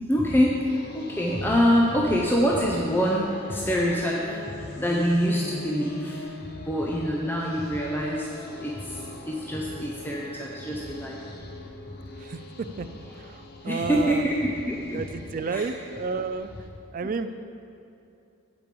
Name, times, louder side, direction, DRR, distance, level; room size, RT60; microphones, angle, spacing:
voice 1, 0.0-11.7 13.6-15.1 15.5-15.7, equal, 10° left, -3 dB, 0.6 m, -26 dB
sound 1, 0.6-16.7, left 2 dB, 50° left, 0.7 m, -42 dB
voice 2, 13.2-14.2 14.9-16.5 16.9-17.3, right 4 dB, 40° right, 10 dB, 0.3 m, -31 dB
7.9 x 5.1 x 6.8 m, 2.7 s
head